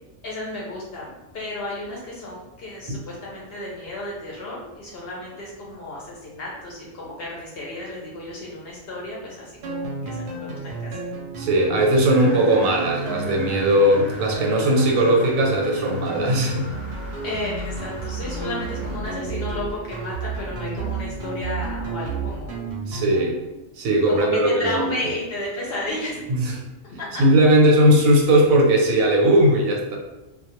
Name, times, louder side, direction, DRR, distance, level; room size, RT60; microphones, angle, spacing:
voice 1, 0.2-11.0 17.2-22.5 24.1-26.3 27.0-27.2, left 1 dB, 60° left, -4 dB, 0.7 m, -33 dB
sound 1, 9.6-23.3, right 2 dB, 65° right, 0.8 m, -31 dB
voice 2, 11.4-16.6 22.9-23.4 23.8-24.9 26.3-26.5 27.2-30.0, right 1 dB, 85° right, 0 dB, 1.0 m, -18 dB
sound 2, 12.1-19.0, equal, 40° right, 0.4 m, -42 dB
2.3 x 2.2 x 2.8 m, 0.99 s
omnidirectional pair, 1.4 m